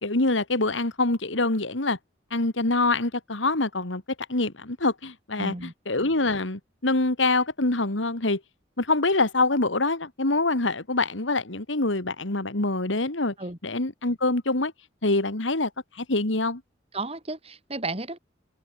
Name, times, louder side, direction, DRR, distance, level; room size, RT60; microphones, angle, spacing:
voice 1, 0.0-2.0 2.3-4.0 4.3-8.4 8.8-13.3 13.6-14.7 15.0-16.6, left 2 dB, 90° left, 2.4 m, -25 dB
voice 2, 5.4-5.7 13.4-13.6 16.9-18.2, right 2 dB, 30° right, 5.7 m, -33 dB
open air
head